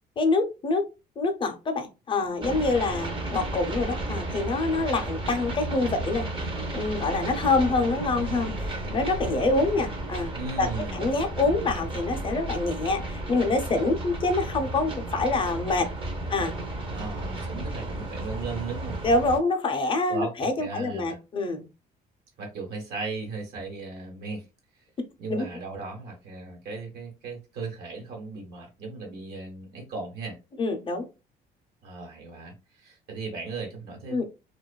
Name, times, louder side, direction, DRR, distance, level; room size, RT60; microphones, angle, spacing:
voice 1, 0.2-0.8 1.2-10.3 10.6-15.9 16.3-16.5 19.0-21.7 25.3-25.4 30.6-31.0 34.1-34.2, left 3 dB, 30° left, 0.5 m, -26 dB
sound 1, 2.4-19.4, right 2 dB, 30° right, 0.6 m, -33 dB
voice 2, 10.3-11.0 16.9-19.0 20.1-21.2 22.4-24.5 25.2-30.4 31.8-34.2, right 3 dB, 75° right, 1.1 m, -36 dB
2.5 x 2.3 x 2.2 m
cardioid pair, 110°, 17 cm